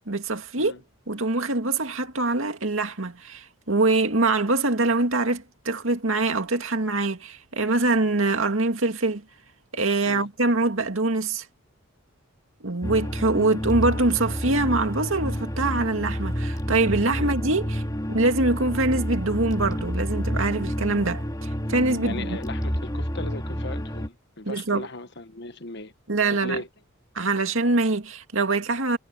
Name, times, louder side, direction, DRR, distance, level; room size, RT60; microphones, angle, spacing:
voice 1, 0.1-0.7 1.1-9.2 9.7-11.5 12.6-17.8 18.1-22.4 24.4-24.9 26.1-26.6 27.1-29.0, right 2 dB, 70° right, 2.3 m, -24 dB
sound 1, 12.8-24.1, equal, 20° left, 2.2 m, -29 dB
voice 2, 22.0-25.9 26.3-26.7, left 2 dB, 55° left, 1.4 m, -37 dB
head